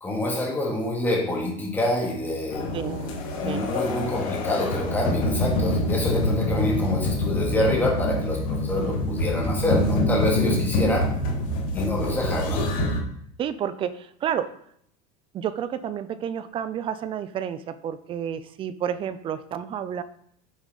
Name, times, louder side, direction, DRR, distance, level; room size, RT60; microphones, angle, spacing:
voice 1, 0.0-2.8 3.4-11.1 11.7-12.7, left 1 dB, 10° left, -2 dB, 2.4 m, -26 dB
sound 1, 2.5-13.0, left 1 dB, 85° left, 1.9 m, -26 dB
voice 2, 2.7-3.7 6.5-6.7 8.8-9.0 12.1-12.3 13.4-14.5 15.3-20.0, right 9 dB, 30° right, 14 dB, 0.5 m, -31 dB
8.3 x 7.2 x 4.1 m, 0.70 s
supercardioid pair, 140°, 17 cm